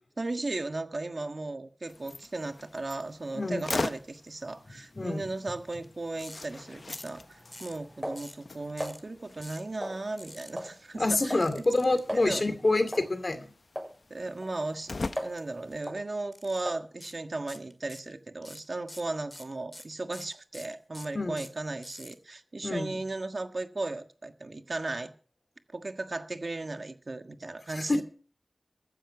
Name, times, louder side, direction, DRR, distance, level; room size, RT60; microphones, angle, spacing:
voice 1, 0.2-11.6 12.1-12.4 14.1-14.9 15.2-25.1 25.7-28.0, right 2 dB, 60° right, 8 dB, 1.5 m, -36 dB
sound 1, 1.9-15.8, left 3 dB, 70° left, 0.7 m, -42 dB
voice 2, 3.3-3.7 5.0-5.2 10.9-13.5 21.1-21.4 22.6-23.0 27.7-28.0, left 2 dB, 55° left, 10 dB, 2.3 m, -27 dB
sound 2, 6.2-6.4 6.9-7.2 7.5-7.8 8.2-8.4 8.8-9.0 9.4-9.7 10.2-10.5 11.4-12.0 15.1-15.4 15.7-15.9 16.3-16.6 17.0-17.2 17.5-18.1 18.4-22.1, left 1 dB, 30° left, 2.2 m, -47 dB
sound 3, 6.7-9.0 9.8-10.3 10.6-10.8 11.0-11.5 11.8-11.9 12.1-12.3 12.9-13.1 13.8-13.9 14.4-15.5 15.9-16.0 16.7-16.9, equal, 5° right, 7.7 m, -38 dB
14.5 x 10.0 x 5.9 m, 0.40 s
wide cardioid pair, 45°, 0 cm